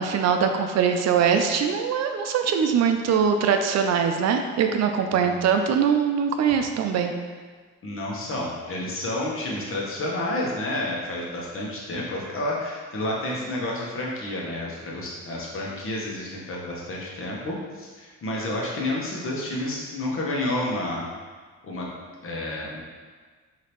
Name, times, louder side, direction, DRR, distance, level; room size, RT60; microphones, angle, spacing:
voice 1, 0.0-7.1, right 7 dB, 60° right, 6 dB, 0.4 m, -22 dB
voice 2, 7.8-21.1 21.6-21.9 22.2-22.8, left 1 dB, 45° left, -3 dB, 1.1 m, -30 dB
5.0 x 2.8 x 3.0 m, 1.5 s
cardioid pair, 90°, 30 cm